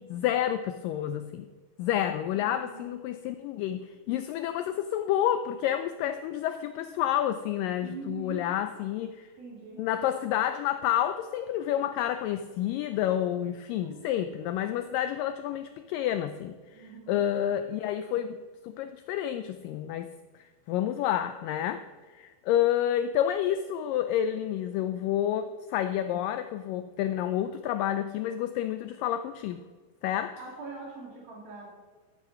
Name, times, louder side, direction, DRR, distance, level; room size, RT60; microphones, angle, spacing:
voice 1, 0.0-1.5 1.8-9.3 9.8-20.1 20.7-29.6 30.0-30.4, left 11 dB, 85° left, 10 dB, 1.9 m, -29 dB
voice 2, 2.3-3.0 7.8-8.4 9.4-9.8 13.8-14.1 16.7-17.2 30.4-31.7, right 3 dB, 70° right, -2 dB, 4.8 m, -43 dB
13.0 x 9.0 x 5.7 m, 1.4 s
omnidirectional pair, 4.4 m